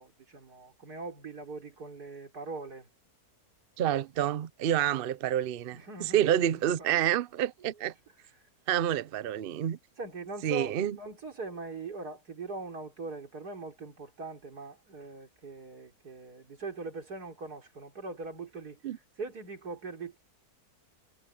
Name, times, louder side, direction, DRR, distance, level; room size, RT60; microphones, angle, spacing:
voice 1, 0.0-2.9 5.7-7.1 7.6-8.4 10.0-20.2, right 3 dB, 85° right, 4.2 m, -42 dB
voice 2, 3.8-7.9 8.7-9.8 10.4-11.0 18.8-19.0, right 11 dB, 60° right, 0.6 m, -28 dB
omnidirectional pair, 1.6 m